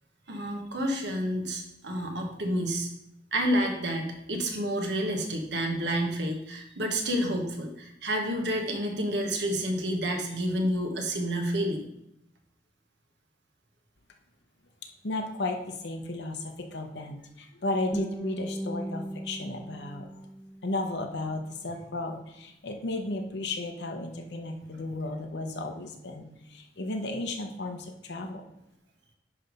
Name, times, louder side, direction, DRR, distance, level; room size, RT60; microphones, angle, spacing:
voice 1, 0.3-2.9 3.3-11.9, equal, 75° right, 3 dB, 1.2 m, -29 dB
voice 2, 15.0-20.1 20.6-28.4, left 2 dB, 75° left, 3 dB, 0.9 m, -34 dB
Guitar, 17.9-20.9, right 1 dB, 15° left, 1.0 m, -37 dB
9.8 x 3.4 x 5.3 m, 0.83 s
head